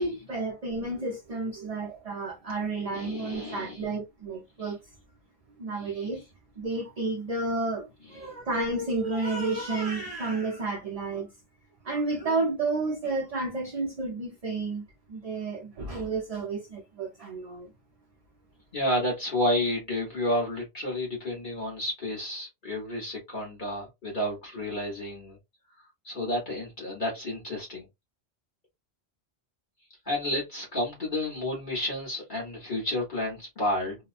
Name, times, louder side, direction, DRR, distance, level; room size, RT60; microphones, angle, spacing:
voice 1, 0.0-4.8 5.6-6.2 6.6-11.3 11.8-17.7, right 3 dB, 40° right, 0.6 m, -31 dB
voice 2, 2.9-3.9 4.6-4.7 5.7-6.1 8.2-8.3 18.7-25.4 25.8-27.9 30.0-34.0, left 1 dB, 45° left, 1.3 m, -31 dB
2.9 x 2.2 x 2.4 m
omnidirectional pair, 1.1 m